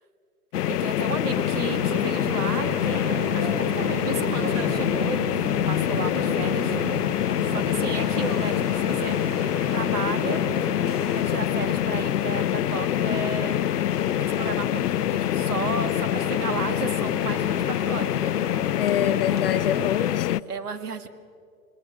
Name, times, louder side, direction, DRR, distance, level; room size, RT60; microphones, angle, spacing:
sound 1, 0.5-20.4, left 12 dB, 85° left, 0.6 m, -25 dB
voice 1, 0.7-5.2 5.7-6.8 7.5-9.4 9.7-13.6 14.2-18.3 20.5-21.1, right 5 dB, 75° right, 10 dB, 1.9 m, -34 dB
sound 2, 1.3-20.2, right 6 dB, 25° right, 0.8 m, -36 dB
voice 2, 6.0-6.7 18.8-20.4, left 9 dB, 40° left, 13 dB, 0.6 m, -27 dB
26.5 x 20.5 x 6.2 m, 2.2 s
hypercardioid pair, 155°, 45 cm